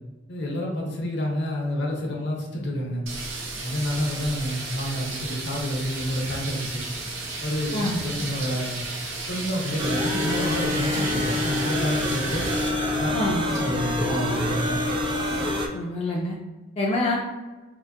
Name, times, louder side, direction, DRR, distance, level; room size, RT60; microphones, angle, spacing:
voice 1, 0.3-3.0 3.6-6.8 7.4-8.8 9.3-12.5 12.9-13.1 13.4-14.8, equal, 65° left, -1 dB, 0.8 m, -29 dB
sound 1, 3.1-12.7, right 3 dB, 85° right, 0.7 m, -34 dB
voice 2, 7.7-8.0 13.1-13.5 15.7-16.4 16.8-17.2, left 1 dB, 30° left, -3 dB, 0.4 m, -26 dB
sound 2, 9.8-15.7, left 1 dB, 25° right, 0.4 m, -26 dB
3.8 x 2.5 x 2.5 m, 1.2 s
head